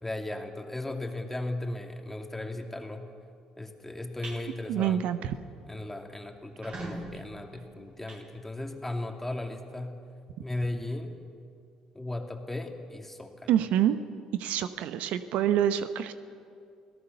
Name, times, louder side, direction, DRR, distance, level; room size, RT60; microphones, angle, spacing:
voice 1, 0.0-3.1 3.6-5.3 5.7-10.0 10.4-11.1 11.9-13.5, left 2 dB, 10° left, 4 dB, 2.8 m, -36 dB
sound 1, 4.0-4.4 4.8-5.1 5.4-5.5 5.8-5.9 6.4-8.9, right 2 dB, 50° right, 7.1 m, -43 dB
voice 2, 4.7-5.3 13.5-14.0 14.4-16.1, right 10 dB, 65° right, 11 dB, 0.9 m, -26 dB
27.5 x 17.5 x 6.8 m, 2.3 s
hypercardioid pair, 55°, 2 cm